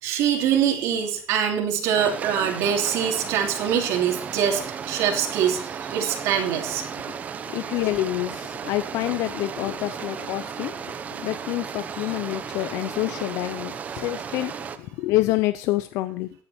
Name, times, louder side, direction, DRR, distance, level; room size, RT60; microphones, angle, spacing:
voice 1, 0.0-6.8, right 8 dB, 85° right, 2 dB, 3.0 m, -24 dB
sound 1, 2.0-14.8, right 7 dB, 30° right, 0.9 m, -35 dB
voice 2, 7.5-10.8 11.2-16.4, left 17 dB, 85° left, 12 dB, 0.6 m, -27 dB
14.5 x 9.0 x 4.4 m, 0.42 s
cardioid pair, 165°, 5 cm